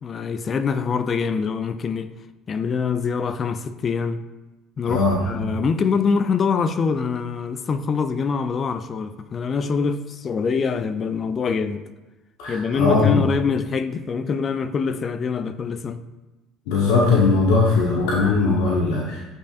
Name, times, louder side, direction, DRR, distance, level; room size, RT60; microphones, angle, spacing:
voice 1, 0.0-2.1 2.5-4.2 4.8-11.8 12.5-16.0, left 5 dB, 40° left, 0.4 m, -24 dB
voice 2, 4.8-5.5 12.4-13.2 16.7-19.2, left 3 dB, 70° left, 1.0 m, -19 dB
8.4 x 5.8 x 2.5 m
hypercardioid pair, 65°, 0 cm